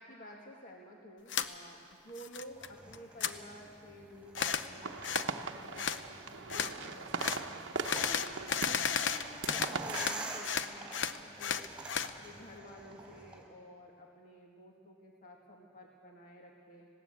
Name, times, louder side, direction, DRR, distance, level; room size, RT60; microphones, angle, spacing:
voice 1, 0.0-7.5 7.9-11.6 12.0-16.9, equal, 45° left, -1 dB, 1.8 m, -52 dB
sound 1, 1.3-1.5 1.9-2.7 2.9-3.3 4.3-4.7 5.0-5.3 5.8-6.0 6.5-6.7 7.2-7.4 7.8-10.2 10.4-12.1, left 7 dB, 70° left, 0.7 m, -33 dB
sound 2, 2.6-13.4, right 2 dB, 5° right, 3.8 m, -47 dB
sound 3, 4.8-10.1, right 4 dB, 75° right, 0.9 m, -40 dB
20.0 x 17.5 x 8.5 m, 2.4 s
head